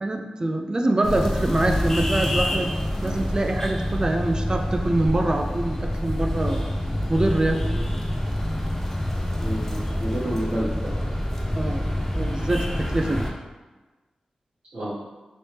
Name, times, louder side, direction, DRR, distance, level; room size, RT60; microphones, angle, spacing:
voice 1, 0.0-2.7 3.0-6.6 7.1-7.6 11.6-11.8 12.2-13.3, right 1 dB, 35° right, 4 dB, 0.3 m, -24 dB
sound 1, 1.0-13.3, equal, 15° left, 0.5 m, -26 dB
voice 2, 9.4-11.0 14.7-14.9, right 1 dB, 60° right, -11 dB, 0.9 m, -29 dB
3.0 x 2.8 x 3.3 m, 1.2 s
cardioid pair, 60°, 2 cm